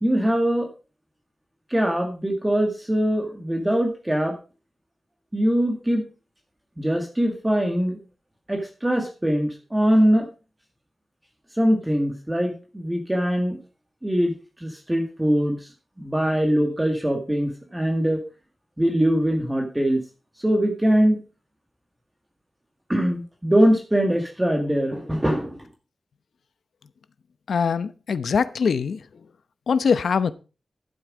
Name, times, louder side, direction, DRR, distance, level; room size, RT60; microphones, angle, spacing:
voice 1, 0.0-0.7 1.7-4.4 5.3-6.0 6.8-8.0 8.5-10.3 11.6-13.6 14.0-14.3 14.6-15.6 16.0-18.2 18.8-20.0 20.4-21.2 22.9-25.6, equal, 10° right, 1.8 m, -22 dB
voice 2, 27.5-29.0 29.7-30.3, left 6 dB, 80° left, 0.8 m, -22 dB
12.5 x 7.9 x 5.0 m
wide cardioid pair, 160°, 0 cm